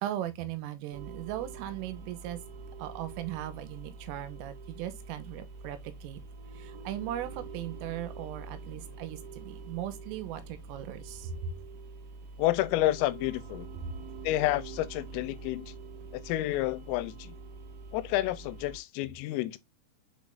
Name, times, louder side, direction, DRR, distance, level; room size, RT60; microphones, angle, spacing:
voice 1, 0.0-2.4 2.8-6.2 6.5-11.5, right 11 dB, 85° right, 3.5 m, -38 dB
sound 1, 0.9-18.8, right 3 dB, 65° right, 3.6 m, -45 dB
voice 2, 12.4-13.7 14.2-15.7 16.1-17.4 17.9-19.6, left 16 dB, 90° left, 3.3 m, -30 dB
7.4 x 5.3 x 2.4 m
omnidirectional pair, 5.9 m